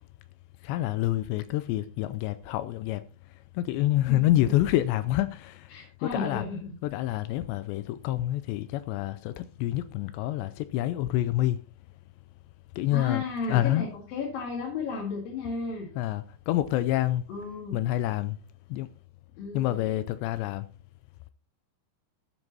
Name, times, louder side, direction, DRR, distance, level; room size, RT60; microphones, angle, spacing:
voice 1, 0.6-3.0 3.6-5.7 6.0-6.4 6.8-11.6 12.8-13.9 16.0-17.2 17.7-18.4 18.7-18.9 19.5-20.7, left 14 dB, 85° left, 2.7 m, -27 dB
voice 2, 4.1-4.4 5.7-6.8 12.9-15.9 17.3-17.8 19.4-19.8, left 4 dB, 55° left, 3.7 m, -34 dB
12.5 x 8.0 x 4.1 m
omnidirectional pair, 5.1 m